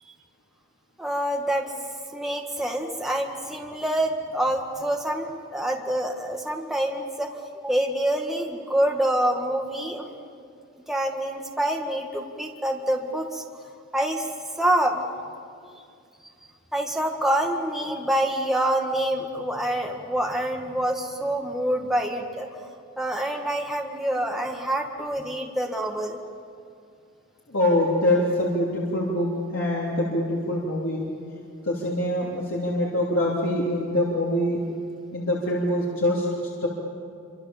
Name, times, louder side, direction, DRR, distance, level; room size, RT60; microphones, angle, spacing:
voice 1, 1.0-1.7 2.1-10.2 10.9-13.4 13.9-14.3 14.6-15.0 16.7-22.5 23.0-26.2, right 1 dB, ahead, 0 dB, 1.7 m, -26 dB
voice 2, 27.5-31.0 31.6-34.6 35.1-36.2 36.6-36.7, left 1 dB, 75° left, -5 dB, 3.4 m, -24 dB
27.0 x 25.5 x 7.2 m, 2.4 s
head